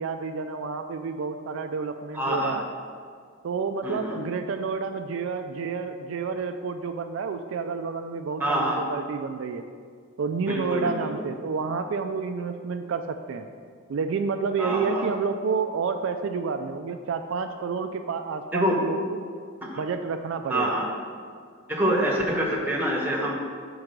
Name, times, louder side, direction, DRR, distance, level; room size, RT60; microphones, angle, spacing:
voice 1, 0.0-2.7 3.4-9.6 10.2-13.5 13.9-19.2 19.8-20.7, right 5 dB, 60° right, 6 dB, 0.3 m, -29 dB
voice 2, 2.1-2.6 3.8-4.2 8.4-8.8 10.5-10.9 14.6-15.1 18.5-18.8 19.6-19.8 20.5-20.9 21.7-23.3, right 1 dB, 10° right, -2 dB, 0.9 m, -26 dB
5.9 x 4.7 x 6.5 m, 2.1 s
head